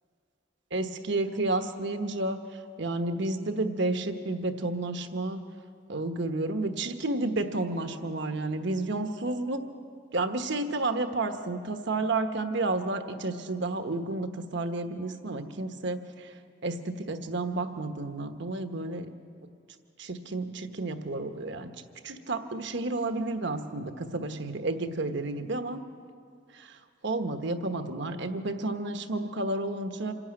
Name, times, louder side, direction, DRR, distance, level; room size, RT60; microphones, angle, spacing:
voice 1, 0.7-2.4 2.8-5.4 5.9-9.6 10.1-16.3 16.6-19.1 20.0-21.7 22.0-25.8 26.5-26.8 27.0-30.1, right 2 dB, 65° right, 7 dB, 1.2 m, -31 dB
26.5 x 11.0 x 8.8 m, 2.2 s
head